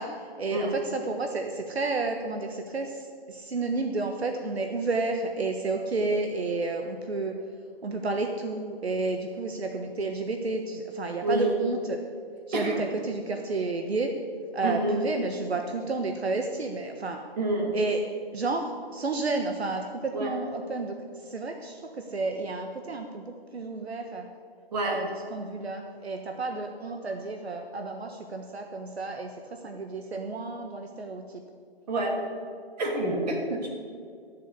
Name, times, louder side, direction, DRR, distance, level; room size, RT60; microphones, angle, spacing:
voice 1, 0.0-7.3 7.8-12.0 12.5-14.1 14.5-17.2 17.7-18.0 18.3-24.3 24.8-31.4, right 3 dB, 80° right, 4 dB, 1.4 m, -31 dB
voice 2, 11.2-11.6 12.5-12.8 14.6-15.0 17.4-17.7 20.1-20.4 24.7-25.0 31.9-32.2 32.8-33.7, right 2 dB, 40° right, 0 dB, 3.1 m, -27 dB
13.5 x 7.4 x 8.4 m, 2.2 s
hypercardioid pair, 155°, 31 cm